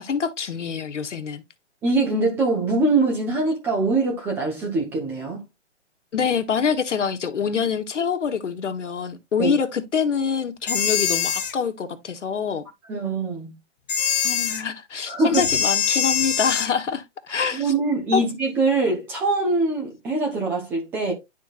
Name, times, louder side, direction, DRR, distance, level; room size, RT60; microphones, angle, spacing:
voice 1, 0.0-1.4 6.1-12.6 14.2-17.7 18.1-18.2, left 6 dB, 80° left, 1.3 m, -25 dB
voice 2, 1.8-5.4 9.4-9.5 12.9-13.5 15.1-15.4 17.5-21.1, right 3 dB, 5° right, 0.5 m, -23 dB
sound 1, 10.7-11.5 13.9-14.6 15.3-16.7, left 8 dB, 35° left, 0.9 m, -23 dB
11.0 x 3.9 x 2.4 m
hypercardioid pair, 150°, 36 cm